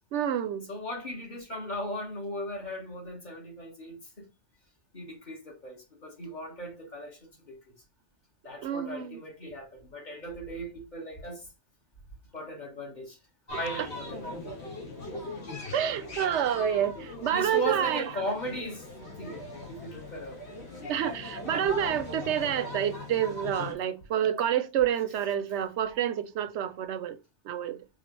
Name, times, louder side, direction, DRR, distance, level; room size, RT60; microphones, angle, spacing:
voice 1, 0.1-0.7 8.6-9.2 15.7-18.0 20.9-27.2 27.5-27.8, right 9 dB, 85° right, 0.9 m, -28 dB
voice 2, 0.7-4.3 4.9-7.7 8.4-11.5 12.3-13.2 13.6-14.5 17.3-18.9 19.2-20.4, equal, 40° left, 1.6 m, -37 dB
sound 1, 13.5-23.7, left 2 dB, 70° left, 2.0 m, -40 dB
4.8 x 3.4 x 3.1 m
omnidirectional pair, 1.1 m